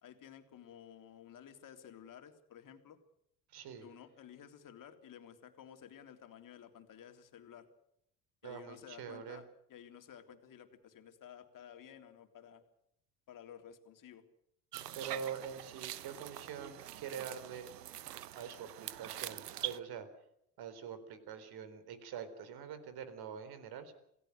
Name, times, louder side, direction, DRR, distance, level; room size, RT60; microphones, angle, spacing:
voice 1, 0.0-3.0 3.8-7.7 8.4-12.6 13.3-14.2, left 9 dB, 45° left, 6 dB, 3.4 m, -54 dB
voice 2, 3.5-3.9 8.4-9.4 14.9-17.7 18.3-20.1 20.6-23.9, right 7 dB, 50° right, 11 dB, 4.2 m, -45 dB
sound 1, 14.7-19.8, right 12 dB, 85° right, 1.1 m, -44 dB
27.5 x 17.5 x 6.6 m, 0.76 s
hypercardioid pair, 70°, 47 cm